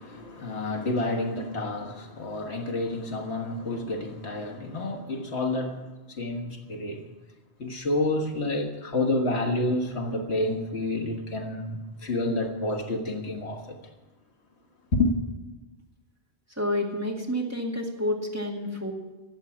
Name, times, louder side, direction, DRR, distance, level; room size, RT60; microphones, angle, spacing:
voice 1, 0.0-5.8 6.1-7.0 7.6-13.8 14.9-15.1, left 2 dB, 75° left, 1.8 m, -29 dB
voice 2, 16.6-18.9, left 1 dB, 15° right, 2.2 m, -29 dB
14.0 x 8.2 x 8.6 m
omnidirectional pair, 1.1 m